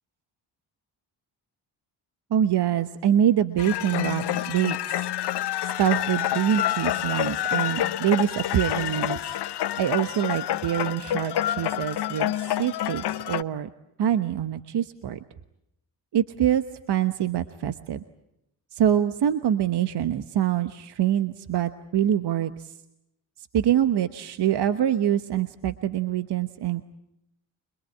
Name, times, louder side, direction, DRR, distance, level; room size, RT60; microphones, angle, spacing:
voice 1, 2.3-5.0 5.8-9.2 9.8-13.7 14.0-15.2 16.1-16.6 16.9-18.0 18.7-22.7 23.5-26.8, right 10 dB, 60° right, 10 dB, 1.2 m, -25 dB
sound 1, 3.6-13.4, left 12 dB, 60° left, 0.9 m, -28 dB
25.5 x 22.5 x 8.5 m, 0.82 s
supercardioid pair, 55°, 45 cm